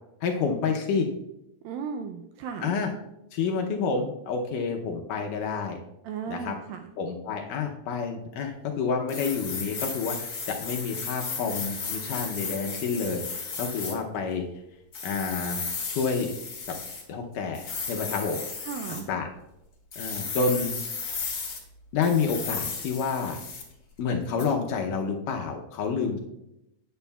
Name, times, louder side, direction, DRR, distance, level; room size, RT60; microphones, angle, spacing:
voice 1, 0.2-1.1 2.6-2.9 3.3-5.8 6.3-6.5 7.0-14.5 15.0-15.6 15.9-16.3 17.1-18.4 18.9-19.3 20.0-20.7 21.1-21.2 21.9-23.4 24.0-26.2, left 5 dB, 80° left, 2 dB, 1.9 m, -29 dB
voice 2, 1.6-2.8 6.0-6.9 18.6-19.1, right 6 dB, 85° right, 5 dB, 2.0 m, -35 dB
sound 1, 9.1-13.9 14.9-17.0 17.5-19.0 19.9-21.6 22.0-23.7 24.4-24.5, left 5 dB, 40° left, 1.9 m, -34 dB
12.5 x 9.1 x 2.3 m, 0.87 s
omnidirectional pair, 4.6 m